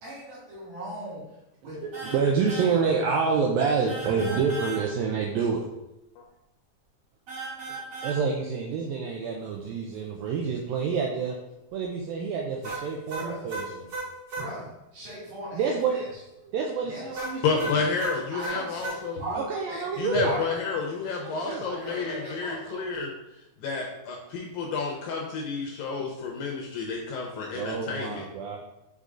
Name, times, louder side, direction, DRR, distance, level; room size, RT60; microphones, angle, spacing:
voice 1, 0.0-3.0 4.0-4.4 13.1-13.5 14.4-16.2 16.8-17.3 18.3-19.4 19.7-20.5 21.5-23.1, right 1 dB, 60° right, -8 dB, 4.5 m, -39 dB
voice 2, 1.8-5.6 8.0-11.4 11.7-13.9 15.5-16.0 16.5-17.4 19.4-20.3 21.2-21.6 27.5-28.6, right 5 dB, 80° right, 0 dB, 2.1 m, -27 dB
sound 1, 1.9-2.2 2.5-2.7 3.9-4.8 7.3-8.2 12.6-14.5 17.1-19.0, right 2 dB, 40° right, 2.5 m, -35 dB
voice 3, 17.4-19.2 20.0-23.1 23.6-28.2, left 4 dB, 75° left, 0 dB, 2.3 m, -30 dB
8.2 x 4.0 x 3.7 m, 0.92 s
omnidirectional pair, 4.7 m